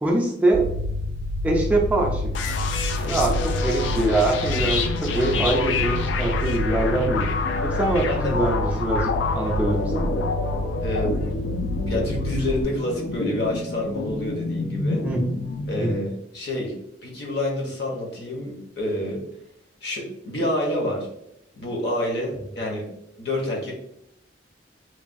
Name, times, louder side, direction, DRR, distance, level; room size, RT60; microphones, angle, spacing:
voice 1, 0.0-0.7 1.4-2.3 3.1-7.3 7.6-10.1 15.0-15.2 15.8-15.9, right 2 dB, 10° right, -1 dB, 0.3 m, -23 dB
sound 1, 0.5-12.6, left 1 dB, 75° right, 0.4 m, -28 dB
sound 2, 2.3-16.0, left 3 dB, 85° left, 0.4 m, -28 dB
voice 2, 8.1-8.4 10.8-11.1 11.9-15.0 15.7-16.7 17.0-19.2 19.8-21.1 21.5-22.9 23.2-23.7, left 1 dB, 65° left, -1 dB, 0.8 m, -28 dB
3.1 x 2.2 x 2.5 m, 0.77 s
head